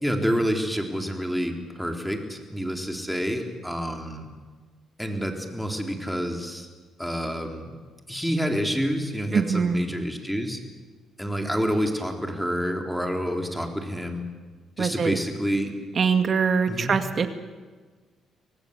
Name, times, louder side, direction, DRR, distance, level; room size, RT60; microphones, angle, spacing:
voice 1, 0.0-4.3 5.0-6.7 7.0-7.7 8.1-10.6 11.2-14.2 14.8-15.7 16.7-17.0, equal, ahead, 3 dB, 3.9 m, -28 dB
voice 2, 9.3-9.8 14.8-15.2 16.0-17.3, right 5 dB, 50° right, 7 dB, 2.2 m, -23 dB
25.0 x 18.5 x 8.3 m, 1.4 s
cardioid pair, 90°, 0 cm